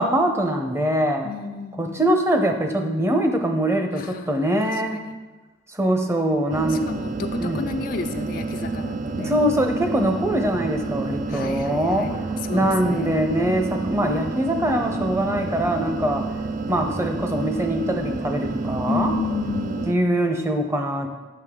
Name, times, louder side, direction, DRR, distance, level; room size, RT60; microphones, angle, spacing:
voice 1, 0.0-1.3 1.8-5.0 5.7-6.8 7.4-7.6 9.2-16.4 16.7-19.1 19.9-21.1, right 1 dB, 15° right, 4 dB, 0.7 m, -23 dB
voice 2, 1.2-2.1 3.9-5.2 6.7-9.4 11.3-13.2 18.9-19.9, left 5 dB, 50° left, 7 dB, 0.3 m, -32 dB
sound 1, 6.5-19.9, right 3 dB, 45° right, 0.3 m, -29 dB
8.7 x 6.3 x 3.7 m, 1.2 s
head